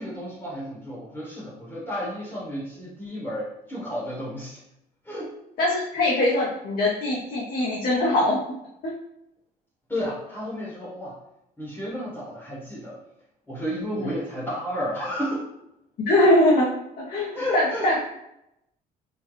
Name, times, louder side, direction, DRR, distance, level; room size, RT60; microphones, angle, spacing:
voice 1, 0.0-4.6 5.0-5.3 9.9-11.2 11.6-13.0 13.5-15.5 17.3-17.9, equal, 10° left, -6 dB, 1.0 m, -32 dB
voice 2, 5.6-8.4 8.8-8.9 13.9-14.1 16.1-16.7 17.0-18.0, left 1 dB, 60° left, -4 dB, 0.8 m, -22 dB
3.8 x 2.3 x 3.0 m, 0.83 s
cardioid pair, 110°, 17 cm